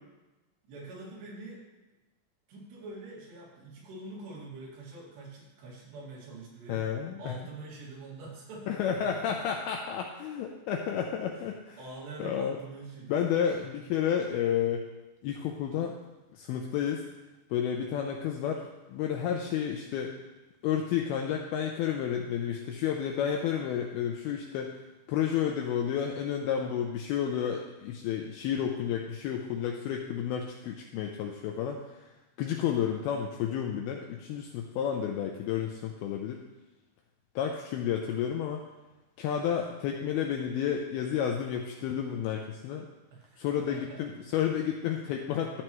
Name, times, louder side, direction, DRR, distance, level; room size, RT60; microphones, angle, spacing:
voice 1, 0.6-1.6 2.5-6.9 7.2-9.3 11.8-13.2 43.1-44.0, right 2 dB, 70° right, -4 dB, 4.2 m, -45 dB
voice 2, 6.7-7.3 8.7-11.8 12.2-12.6 13.1-14.8 15.2-16.0 16.3-17.0 17.5-20.2 20.6-24.7 25.1-32.1 32.4-36.4 37.4-38.6 39.2-42.9 43.4-45.6, left 8 dB, 90° left, 2 dB, 2.2 m, -31 dB
12.5 x 7.7 x 3.1 m, 1.1 s
omnidirectional pair, 5.0 m